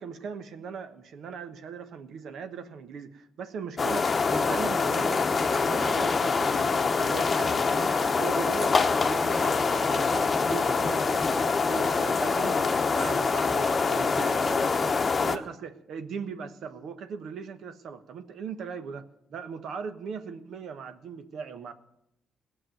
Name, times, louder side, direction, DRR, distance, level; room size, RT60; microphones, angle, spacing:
voice 1, 0.0-12.6 12.9-14.6 15.2-21.7, right 6 dB, 70° right, 9 dB, 1.1 m, -39 dB
sound 1, 3.8-15.4, left 4 dB, 35° left, 0.9 m, -25 dB
18.0 x 6.1 x 9.1 m, 0.83 s
cardioid pair, 90°, 0 cm